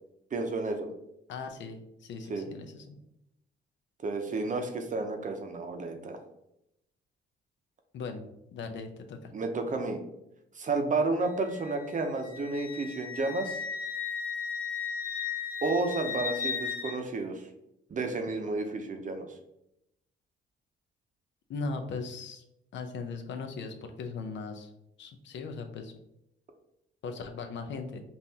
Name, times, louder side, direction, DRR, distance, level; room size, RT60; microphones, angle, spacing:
voice 1, 0.3-0.9 2.3-2.4 4.0-6.2 9.3-10.0 10.5-13.6 15.6-17.5 17.9-19.3, right 3 dB, 40° right, 5 dB, 0.7 m, -31 dB
voice 2, 1.3-3.0 7.9-8.2 8.5-9.3 21.5-22.4 22.7-24.7 25.0-25.9 27.0-28.0, left 4 dB, 70° left, 5 dB, 0.6 m, -38 dB
Wind instrument woodwind instrument, 11.2-17.0, left 6 dB, 50° left, 1.0 m, -36 dB
5.5 x 2.5 x 2.8 m, 0.82 s
cardioid pair, 90°, 20 cm